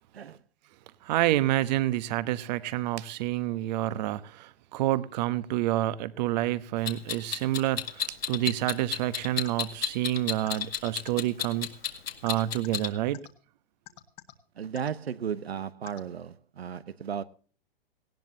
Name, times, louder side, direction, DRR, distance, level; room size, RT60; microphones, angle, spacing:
voice 1, 1.0-11.7 12.2-13.2, right 14 dB, 45° right, 1.1 m, -28 dB
Clock, 6.9-12.9, left 9 dB, 80° left, 2.0 m, -32 dB
sound 1, 9.4-9.5 10.5-10.6 11.1-11.2 12.3-12.8 13.1-13.3 13.9-14.3 14.8-14.9 15.9-16.0, left 17 dB, 40° left, 1.7 m, -46 dB
voice 2, 14.6-17.2, right 8 dB, 90° right, 0.9 m, -35 dB
18.5 x 16.5 x 2.8 m
hypercardioid pair, 130°, 30 cm